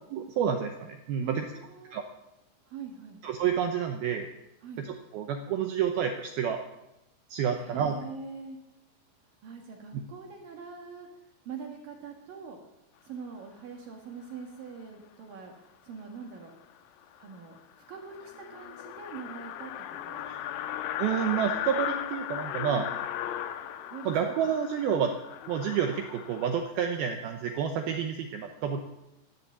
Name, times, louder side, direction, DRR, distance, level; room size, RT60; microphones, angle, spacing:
voice 1, 0.1-1.4 1.9-2.0 3.2-4.3 4.8-6.6 7.3-8.0 20.3-20.5 21.0-22.9 24.1-25.1 25.5-28.8, right 8 dB, 80° right, 5 dB, 2.2 m, -29 dB
voice 2, 1.2-2.1 2.7-3.2 4.6-4.9 7.5-8.6 9.4-11.1 11.5-12.6 13.0-15.5 15.8-16.5 17.2-20.2 22.7-23.0 23.9-24.2, right 5 dB, 60° right, 2 dB, 2.6 m, -43 dB
sound 1, 16.7-16.8 17.2-17.3 17.6-17.7 17.9-26.6, left 11 dB, 85° left, 3.1 m, -37 dB
16.0 x 9.8 x 7.4 m, 0.94 s
omnidirectional pair, 5.5 m